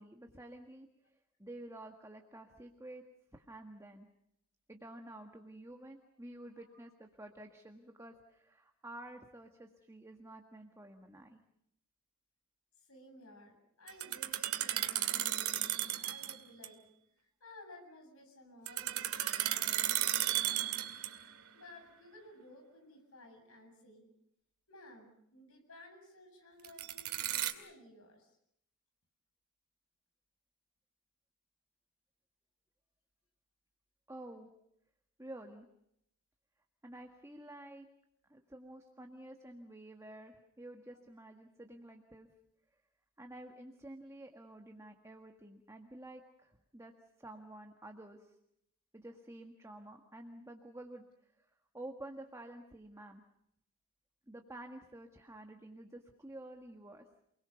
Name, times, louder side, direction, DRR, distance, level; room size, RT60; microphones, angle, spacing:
voice 1, 0.0-3.0 3.3-4.1 4.7-11.4 34.1-34.5 35.2-35.7 36.8-37.8 38.3-42.3 43.2-46.9 47.2-48.4 48.9-51.5 51.7-53.2 54.3-57.0, right 1 dB, 15° right, 4 dB, 1.7 m, -50 dB
voice 2, 12.8-16.8 17.2-19.1 19.4-20.8 21.5-24.1 24.7-28.4 40.9-41.0, left 1 dB, 70° left, 5 dB, 7.7 m, -56 dB
sound 1, 13.9-16.4 16.6-16.7 18.7-21.3 26.6-27.5, right 12 dB, 80° right, 2.4 m, -34 dB
29.0 x 21.0 x 7.0 m, 0.76 s
head